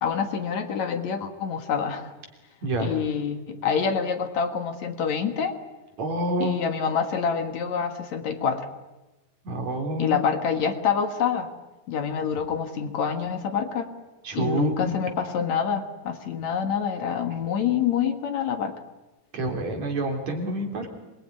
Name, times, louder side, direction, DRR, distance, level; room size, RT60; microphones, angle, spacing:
voice 1, 0.0-2.1 2.8-5.6 6.4-8.7 10.0-11.5 11.9-13.9 14.3-18.7, left 7 dB, 60° left, 6 dB, 2.8 m, -26 dB
voice 2, 6.0-6.5 9.4-10.2 14.2-15.0 19.3-20.9, right 1 dB, 55° right, 3 dB, 4.4 m, -28 dB
26.0 x 21.5 x 9.7 m, 1.1 s
omnidirectional pair, 3.8 m